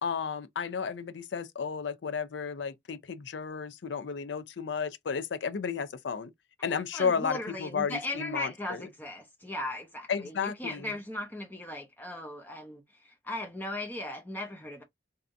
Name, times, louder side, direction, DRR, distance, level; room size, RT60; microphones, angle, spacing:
voice 1, 0.0-6.3 6.6-8.8 10.1-10.9, left 6 dB, 80° left, 0.5 m, -33 dB
voice 2, 6.9-14.8, left 1 dB, 10° left, 0.7 m, -38 dB
3.3 x 2.7 x 2.5 m
head